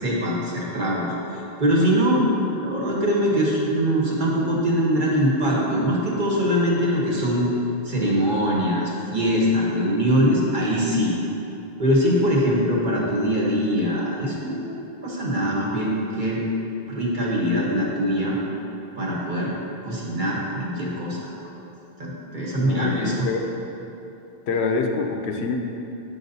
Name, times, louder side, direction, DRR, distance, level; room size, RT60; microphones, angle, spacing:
voice 1, 0.0-1.1 1.6-2.3 2.5-7.5 7.9-11.2 11.8-14.8 15.0-16.4 16.9-18.4 19.0-19.5 19.8-21.2 22.0-23.3, equal, 50° right, -4 dB, 1.1 m, -22 dB
voice 2, 22.5-23.5 24.5-25.6, left 4 dB, 80° left, 4 dB, 0.8 m, -25 dB
7.7 x 5.4 x 2.7 m, 2.9 s
omnidirectional pair, 1.1 m